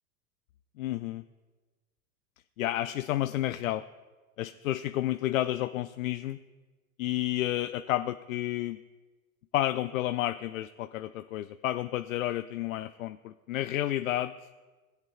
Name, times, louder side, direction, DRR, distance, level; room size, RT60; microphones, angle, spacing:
voice 1, 0.8-1.2 2.6-3.8 4.4-6.4 7.0-8.8 9.5-14.3, left 14 dB, 70° left, 11 dB, 0.5 m, -31 dB
19.5 x 8.2 x 2.4 m, 1.3 s
figure-of-eight pair, 80°, 42 cm